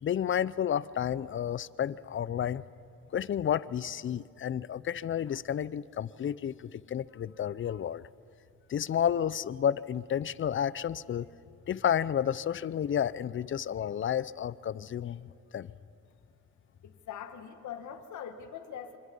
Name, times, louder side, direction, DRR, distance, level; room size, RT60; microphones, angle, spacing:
voice 1, 0.0-2.6 3.1-8.0 8.7-11.3 11.7-15.7, left 9 dB, 40° left, 19 dB, 0.6 m, -31 dB
voice 2, 16.8-19.0, left 8 dB, 70° left, 7 dB, 1.9 m, -42 dB
27.0 x 25.0 x 5.5 m, 2.7 s
cardioid pair, 90°, 30 cm